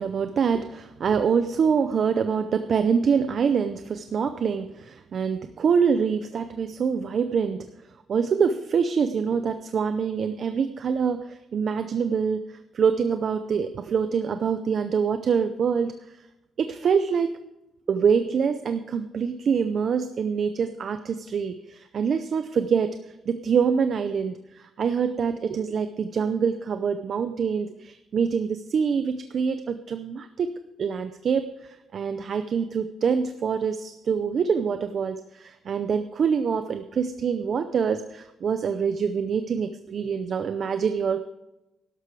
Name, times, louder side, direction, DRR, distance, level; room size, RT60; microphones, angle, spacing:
voice 1, 0.0-7.7 8.1-16.2 16.6-17.3 17.9-22.9 23.3-41.2, right 6 dB, 45° right, 9 dB, 0.6 m, -25 dB
13.0 x 11.5 x 4.8 m, 0.95 s
cardioid pair, 160°, 0 cm